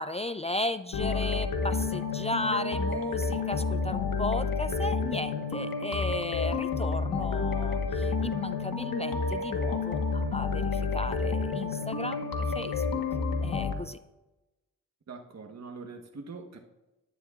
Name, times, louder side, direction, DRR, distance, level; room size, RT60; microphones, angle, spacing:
voice 1, 0.0-13.0 13.4-14.0, left 2 dB, 20° left, 12 dB, 0.4 m, -35 dB
sound 1, 0.9-13.7, left 4 dB, 90° left, 1.5 m, -30 dB
voice 2, 15.1-16.6, right 4 dB, 50° right, 4 dB, 1.4 m, -43 dB
19.0 x 11.0 x 2.5 m, 1.0 s
cardioid pair, 65°, 33 cm